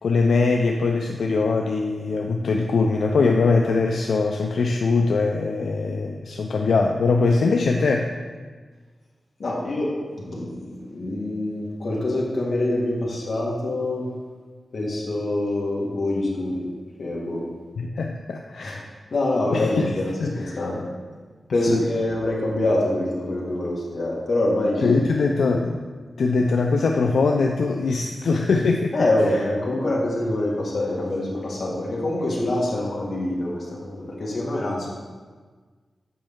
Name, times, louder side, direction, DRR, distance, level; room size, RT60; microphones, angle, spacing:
voice 1, 0.0-8.1 17.8-18.9 19.5-19.9 20.2-20.6 21.7-21.9 24.8-25.8 26.2-28.9, left 4 dB, 85° left, 2 dB, 0.4 m, -22 dB
voice 2, 9.4-14.1 14.7-16.6 17.0-17.4 18.6-18.8 19.1-20.8 21.5-24.9 28.9-34.9, left 1 dB, 60° left, -4 dB, 1.7 m, -25 dB
7.8 x 5.5 x 3.6 m, 1.5 s
wide cardioid pair, 120°, 0 cm